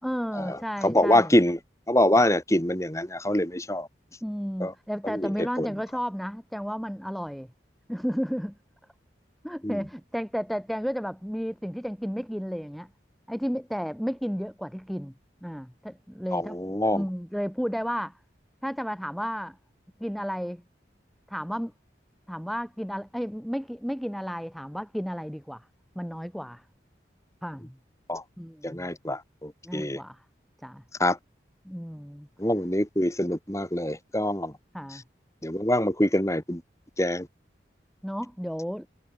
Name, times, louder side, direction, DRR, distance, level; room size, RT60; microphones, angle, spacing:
voice 1, 0.0-1.3 4.2-7.5 7.9-8.6 9.4-12.9 13.3-15.1 15.4-16.6 16.9-18.2 18.6-19.6 20.0-20.6 21.3-21.7 22.3-25.7 25.9-26.6 27.4-27.8 28.4-28.9 29.6-30.2 30.6-30.8 31.6-32.3 34.7-35.0 38.0-38.9, equal, ahead, 5.0 m, -32 dB
voice 2, 0.8-1.6 1.9-3.9 4.6-4.7 5.0-5.7 9.6-9.8 16.3-17.0 28.1-28.2 28.6-30.0 31.0-31.2 32.4-34.5 35.4-36.6 37.0-37.3, left 1 dB, 15° left, 3.9 m, -25 dB
head